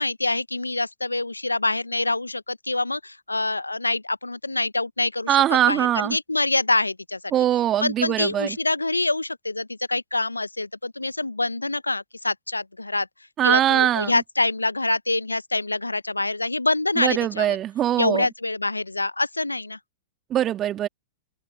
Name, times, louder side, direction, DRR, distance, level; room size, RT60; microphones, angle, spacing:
voice 1, 0.0-7.2 7.8-13.1 13.4-17.6 18.0-19.8, left 2 dB, 85° left, 0.9 m, -25 dB
voice 2, 5.3-6.2 7.3-8.6 13.4-14.1 17.0-18.3 20.3-20.9, right 11 dB, 25° right, 2.2 m, -22 dB
open air
figure-of-eight pair, 105°, 0 cm